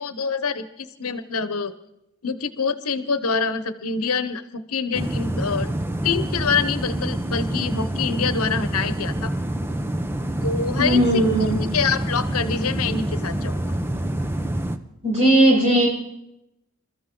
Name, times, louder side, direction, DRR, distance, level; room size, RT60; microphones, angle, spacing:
voice 1, 0.0-1.7 2.2-5.7 6.0-9.3 10.4-13.7, left 5 dB, 85° left, 12 dB, 1.0 m, -26 dB
sound 1, 4.9-14.8, right 1 dB, 10° right, 0.7 m, -26 dB
voice 2, 10.8-11.6 15.0-15.9, right 1 dB, 30° right, -3 dB, 7.0 m, -17 dB
27.5 x 14.0 x 3.9 m, 0.86 s
head